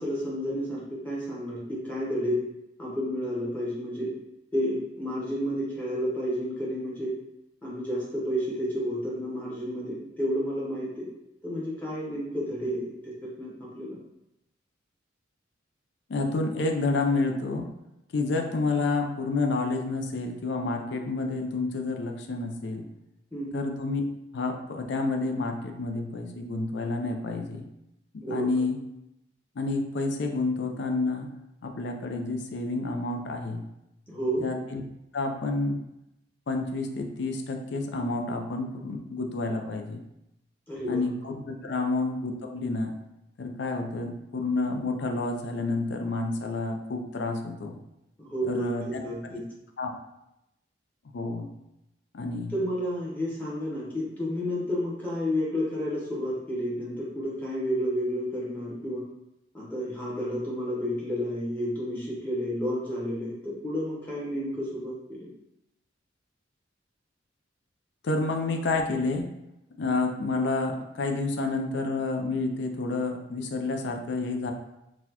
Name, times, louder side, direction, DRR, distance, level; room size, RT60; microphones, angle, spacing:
voice 1, 0.0-2.4 2.8-4.1 4.5-7.1 7.6-11.1 11.4-14.0 23.3-23.5 28.2-28.5 34.1-34.4 40.7-41.0 41.6-41.7 48.2-49.4 52.5-59.0 59.5-65.3, equal, 10° left, -7 dB, 0.8 m, -31 dB
voice 2, 16.1-17.7 18.1-22.8 23.5-24.0 24.3-27.7 28.3-28.8 29.6-31.3 31.6-33.6 34.4-34.8 35.1-35.8 36.5-40.0 40.9-42.9 43.4-47.8 48.5-48.8 49.2-49.4 49.8-50.0 51.1-51.5 52.1-52.5 68.0-69.3 69.8-74.5, left 3 dB, 60° left, 4 dB, 0.4 m, -29 dB
4.1 x 2.2 x 2.8 m, 0.87 s
head